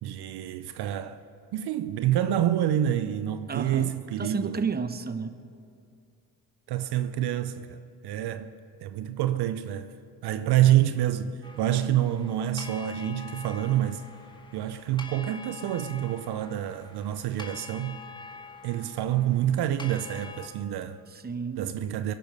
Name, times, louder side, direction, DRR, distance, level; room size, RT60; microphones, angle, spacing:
voice 1, 0.0-1.2 1.5-4.6 6.7-8.5 8.8-9.9 10.2-14.0 14.5-18.0 18.6-21.0 21.6-22.1, right 11 dB, 60° right, 0.7 m, -27 dB
voice 2, 3.5-5.3 21.1-21.8, right 5 dB, 20° right, 1.0 m, -32 dB
sound 1, 11.4-20.5, left 3 dB, 10° left, 1.8 m, -45 dB
22.5 x 11.0 x 5.4 m
hypercardioid pair, 60°, 44 cm